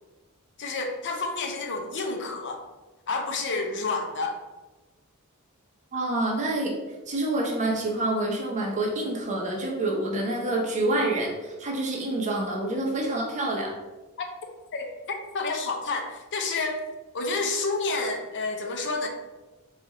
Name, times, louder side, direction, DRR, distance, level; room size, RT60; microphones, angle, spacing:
voice 1, 0.6-2.6 3.1-4.4 14.2-14.3 14.7-16.8 17.1-19.1, left 3 dB, 55° left, 4 dB, 0.6 m, -29 dB
voice 2, 5.9-6.8 7.1-13.8, right 2 dB, 35° right, -1 dB, 0.8 m, -27 dB
4.1 x 2.4 x 4.1 m, 1.2 s
head